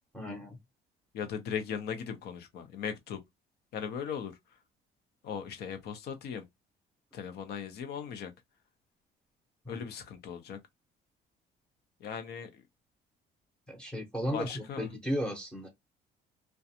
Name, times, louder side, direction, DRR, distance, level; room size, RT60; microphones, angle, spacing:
voice 1, 0.1-0.6 9.6-9.8 13.7-15.7, equal, 5° left, 0.8 m, -35 dB
voice 2, 1.1-3.2 3.7-4.3 5.2-6.4 7.1-8.3 9.7-10.6 12.0-12.6 14.3-14.9, left 7 dB, 70° left, 0.7 m, -38 dB
2.4 x 2.2 x 2.7 m
cardioid pair, 110°, 17 cm